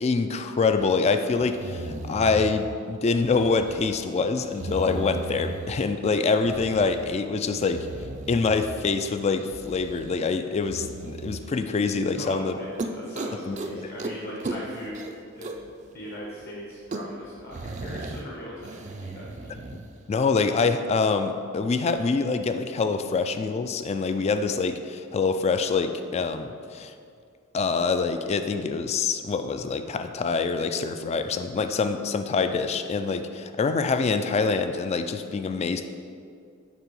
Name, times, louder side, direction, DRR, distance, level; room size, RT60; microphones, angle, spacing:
voice 1, 0.0-7.9 8.3-12.6 13.5-13.6 20.1-26.9 27.5-35.9, left 4 dB, 30° left, 8 dB, 0.3 m, -25 dB
sound 1, 0.8-0.9 1.3-2.8 3.2-4.0 4.4-5.9 6.4-7.1 7.5-8.9 9.3-10.2 10.6-11.5 12.0-12.2 12.5-12.6 12.8-13.7 14.0-14.1 14.4-15.7 16.0-16.1 16.4-16.5 16.7-18.2 18.6-19.8, right 3 dB, 35° right, 0.4 m, -36 dB
voice 2, 12.1-15.0 15.3-19.6, equal, 50° left, -4 dB, 0.9 m, -39 dB
7.3 x 3.3 x 5.4 m, 2.3 s
head